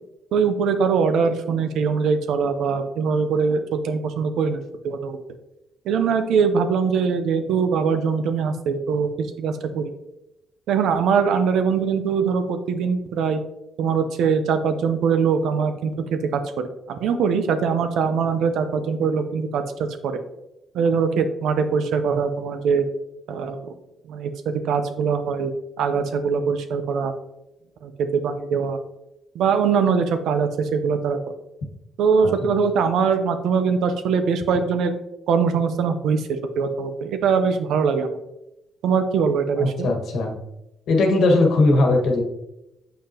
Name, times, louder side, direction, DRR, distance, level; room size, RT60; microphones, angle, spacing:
voice 1, 0.3-5.2 5.9-9.9 10.7-13.4 13.8-20.2 20.7-22.9 23.3-23.7 24.1-27.1 27.8-28.8 29.3-31.2 32.0-34.9 35.3-38.2 38.8-39.9, right 6 dB, 80° right, 8 dB, 0.7 m, -22 dB
voice 2, 39.6-40.3 40.9-42.2, left 2 dB, 75° left, 2 dB, 1.5 m, -19 dB
6.9 x 5.5 x 2.9 m, 0.87 s
cardioid pair, 90°, 0 cm